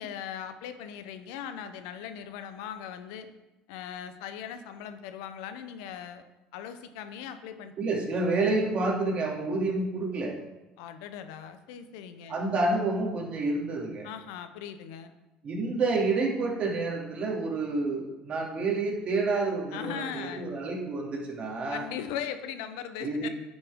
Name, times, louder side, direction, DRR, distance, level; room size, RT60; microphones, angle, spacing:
voice 1, 0.0-3.3 3.7-6.3 6.5-7.7 10.8-12.4 14.0-15.1 19.7-20.5 21.7-23.3, left 9 dB, 85° left, 9 dB, 0.8 m, -39 dB
voice 2, 7.8-10.4 12.3-14.1 15.4-21.8 23.0-23.3, right 3 dB, 45° right, -1 dB, 2.6 m, -29 dB
9.5 x 6.5 x 3.7 m, 1.0 s
supercardioid pair, 95°, 3 cm